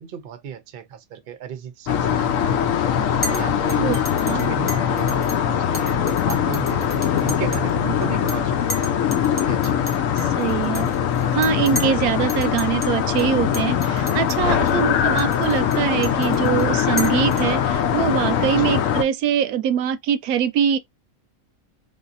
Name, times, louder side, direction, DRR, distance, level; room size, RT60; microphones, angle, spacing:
voice 1, 0.0-2.8 3.3-4.0 4.2-9.0 9.3-10.3 14.6-14.8 18.6-18.8, right 8 dB, 55° right, 0.7 m, -35 dB
sound 1, 1.9-19.0, left 9 dB, 70° left, 0.9 m, -22 dB
Chink clink, 3.2-3.4 3.7-5.4 5.7-7.7 8.0-8.4 8.7-12.0 12.3-12.9 13.2-13.3 13.5-14.4 14.7-14.8 15.2-17.8, left 1 dB, 30° left, 0.4 m, -34 dB
voice 2, 10.4-10.9 11.3-20.8, right 9 dB, 85° right, 1.0 m, -23 dB
3.5 x 2.7 x 2.5 m
omnidirectional pair, 1.5 m